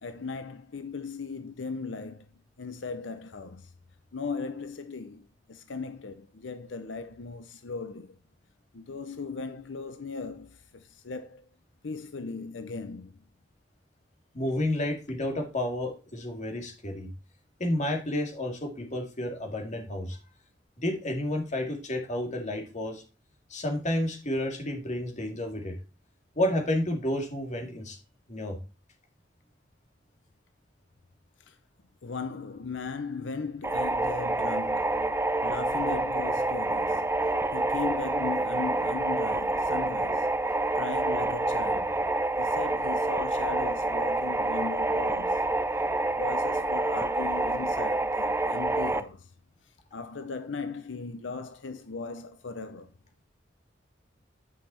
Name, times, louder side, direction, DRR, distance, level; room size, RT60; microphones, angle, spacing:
voice 1, 0.0-2.3 2.6-3.7 4.1-8.2 8.7-11.5 11.8-13.2 31.5-31.6 32.0-40.4 40.8-42.0 42.4-45.4 46.1-49.3 49.9-52.9, left 4 dB, 90° left, 0.7 m, -38 dB
voice 2, 14.3-17.1 17.6-20.2 20.8-23.0 23.5-25.7 26.4-28.0 28.3-28.6, left 1 dB, 40° left, 2.1 m, -30 dB
sound 1, 33.6-49.0, right 2 dB, 15° right, 0.5 m, -27 dB
9.5 x 5.7 x 4.3 m
head